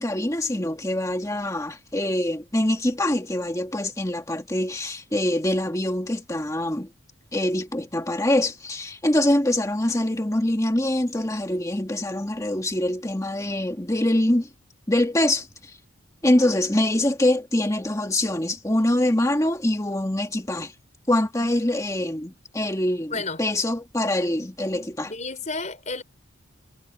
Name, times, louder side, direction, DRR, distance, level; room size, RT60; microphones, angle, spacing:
voice 1, 0.0-6.9 7.3-14.5 14.9-15.8 16.2-20.7 21.1-25.1, left 1 dB, 15° left, 1.8 m, -24 dB
voice 2, 23.1-23.4 25.0-26.0, left 3 dB, 35° left, 5.1 m, -31 dB
head